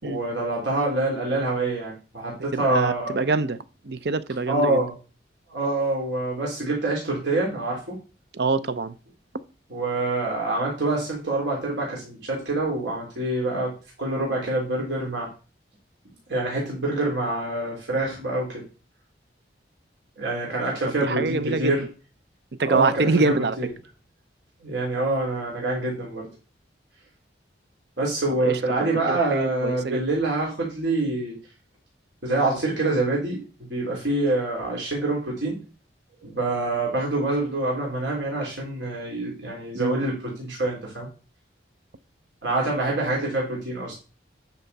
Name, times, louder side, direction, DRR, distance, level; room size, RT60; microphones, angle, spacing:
voice 1, 0.0-3.2 4.5-4.9 5.5-8.0 9.7-13.7 14.0-15.3 16.3-18.6 20.2-21.8 22.6-23.7 24.6-26.3 28.0-31.3 32.2-35.6 36.2-41.1 42.4-43.9, right 2 dB, 75° right, 3.2 m, -26 dB
voice 2, 2.5-3.6 3.8-4.8 8.3-8.9 21.0-21.8 22.6-23.6 28.4-30.0 39.7-40.0, right 3 dB, 60° right, 0.6 m, -25 dB
9.3 x 5.7 x 4.1 m
head